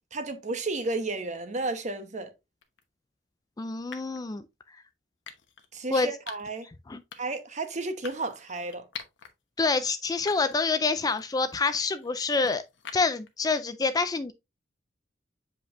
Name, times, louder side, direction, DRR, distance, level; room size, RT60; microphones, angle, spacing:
voice 1, 0.1-2.3 5.7-6.7 7.2-8.8, right 3 dB, 40° right, 1.1 m, -32 dB
sound 1, 2.6-2.8 3.9-4.2 5.3-5.7 6.3-6.6 7.1-7.5 8.0-9.3 9.7-9.8 10.3-10.7 11.1-13.3, left 7 dB, 80° left, 1.1 m, -46 dB
voice 2, 3.6-4.4 5.9-6.1 6.9-7.0 9.6-12.6 12.9-14.3, left 4 dB, 20° left, 0.4 m, -27 dB
7.8 x 5.0 x 2.5 m
head